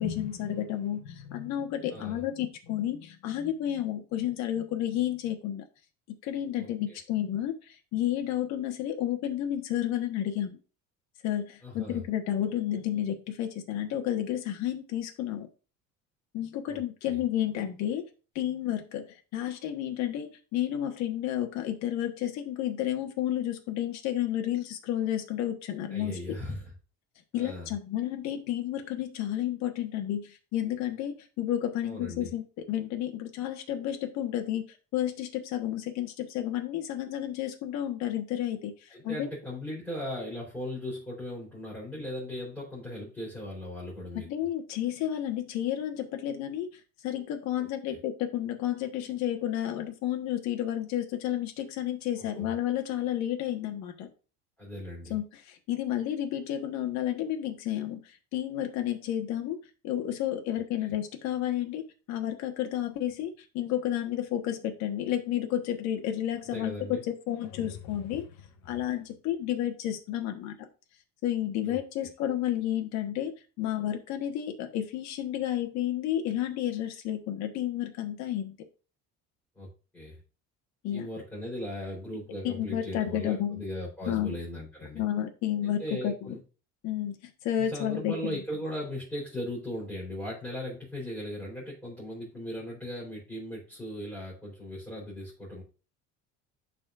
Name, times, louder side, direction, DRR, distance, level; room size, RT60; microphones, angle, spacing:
voice 1, 0.0-5.6 6.2-10.6 11.2-15.5 16.3-18.1 18.3-26.4 27.3-34.7 34.9-39.3 44.1-54.1 55.1-59.6 59.8-66.7 67.3-70.7 71.2-78.5 80.8-81.1 82.4-83.6 84.1-84.3 84.9-86.4 86.8-88.4, left 11 dB, 70° left, 4 dB, 1.4 m, -31 dB
voice 2, 6.6-7.0 11.6-12.0 16.7-17.2 25.9-26.7 27.3-27.7 31.8-32.3 38.9-44.3 47.9-48.0 52.3-52.5 54.6-55.1 60.5-60.6 66.5-67.0 71.6-72.1 79.6-80.2 80.9-85.0 85.6-86.4 87.6-95.6, left 1 dB, 5° left, -7 dB, 3.8 m, -38 dB
11.5 x 4.2 x 2.5 m, 0.34 s
cardioid pair, 135°, 29 cm